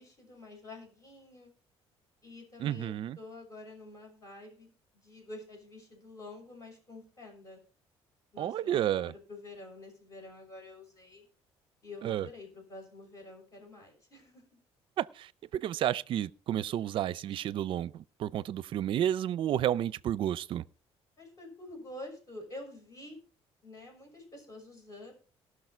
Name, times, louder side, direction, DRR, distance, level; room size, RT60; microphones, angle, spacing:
voice 1, 0.0-1.5 2.2-7.6 8.3-11.3 11.8-14.4 21.2-23.2 23.6-25.1, left 2 dB, 30° left, 6.4 m, -48 dB
voice 2, 2.6-3.2 8.4-9.1 12.0-12.3 15.0-20.6, right 11 dB, 55° right, 0.5 m, -31 dB
18.5 x 6.4 x 4.5 m
cardioid pair, 130°, 10 cm